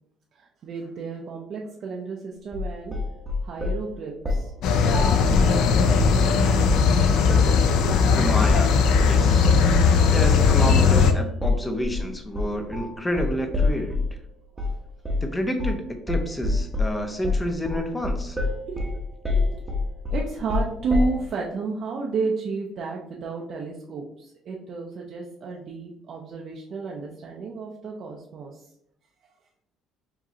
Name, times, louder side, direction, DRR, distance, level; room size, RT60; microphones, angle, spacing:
voice 1, 0.3-3.0 3.4-4.5 6.9-7.2 10.8-10.9 11.4-11.9 12.4-12.9 14.6-14.7 15.4-15.5 18.7-19.0 19.3-19.8 20.1-28.7, right 4 dB, 50° right, -1 dB, 0.5 m, -32 dB
sound 1, 2.5-3.8 4.2-4.5 4.8-6.2 6.6-6.9 7.3-7.5 7.9-8.1 8.4-8.7 8.9-14.2 14.6-14.8 15.0-15.3 15.6-15.8 16.1-21.2, left 2 dB, 15° right, 0.8 m, -26 dB
sound 2, 4.6-11.1, left 5 dB, 70° left, 0.5 m, -18 dB
voice 2, 8.1-8.7 9.0-9.5 10.1-14.0 15.2-18.4, equal, 10° left, 4 dB, 0.6 m, -29 dB
4.8 x 3.1 x 2.8 m, 0.75 s
cardioid pair, 120°, 0 cm